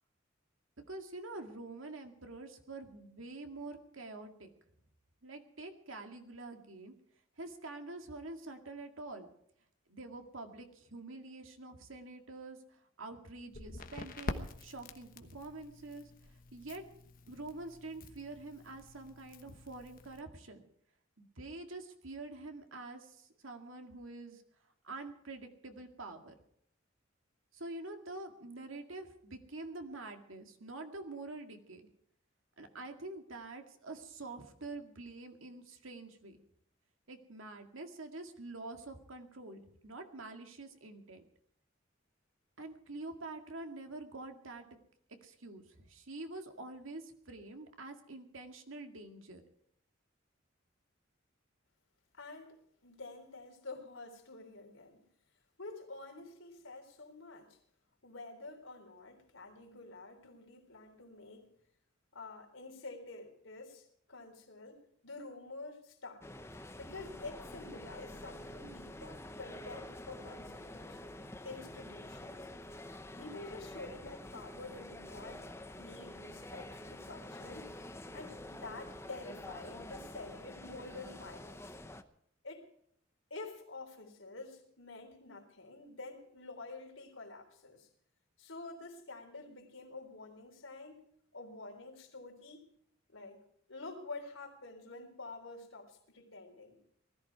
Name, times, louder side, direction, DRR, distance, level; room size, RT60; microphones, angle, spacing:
voice 1, 0.9-4.5 5.2-6.9 7.4-9.3 9.9-16.1 16.5-16.8 17.3-20.6 21.2-24.4 24.8-26.3 27.5-31.9 32.6-36.4 37.1-41.2 42.6-44.8 45.2-49.4, right 2 dB, 85° right, 5 dB, 2.1 m, -46 dB
Crackle, 13.5-20.2, left 2 dB, 45° left, 1.2 m, -46 dB
voice 2, 52.1-55.0 55.6-57.6 58.0-61.5 62.1-66.2 66.8-71.2 71.4-72.5 73.1-75.5 75.8-77.7 78.1-81.6 82.4-82.7 83.3-87.9 88.4-91.0 91.3-92.7 93.1-93.4 93.7-96.8, left 3 dB, 85° left, 3 dB, 3.6 m, -48 dB
sound 1, 66.2-82.0, left 1 dB, 15° left, 0.8 m, -48 dB
19.5 x 14.0 x 4.6 m, 0.68 s
head